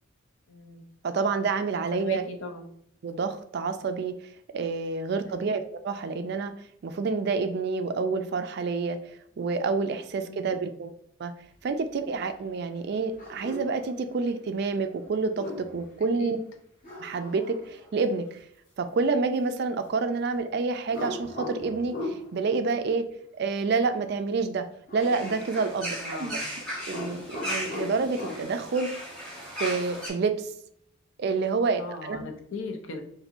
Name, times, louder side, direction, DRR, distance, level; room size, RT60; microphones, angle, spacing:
voice 1, 0.5-0.8 1.7-2.7 5.3-5.4 10.2-10.5 16.2-16.4 25.9-26.4 31.8-33.0, left 3 dB, 70° left, 4 dB, 0.5 m, -38 dB
voice 2, 1.0-2.2 3.0-4.1 4.5-6.5 6.8-9.0 9.4-10.9 11.2-11.3 11.6-16.4 17.0-18.4 18.8-23.1 23.4-24.7 24.9-26.4 26.9-28.9 29.6-30.5 31.2-32.2, right 4 dB, 50° right, 9 dB, 0.3 m, -28 dB
sound 1, 13.2-13.7 15.2-15.9 16.8-17.9 20.9-22.2 24.9-26.5 26.7-28.4, left 1 dB, 40° left, 0.9 m, -38 dB
sound 2, 25.0-30.1, equal, 5° left, 1.0 m, -36 dB
4.2 x 2.6 x 2.5 m, 0.70 s
head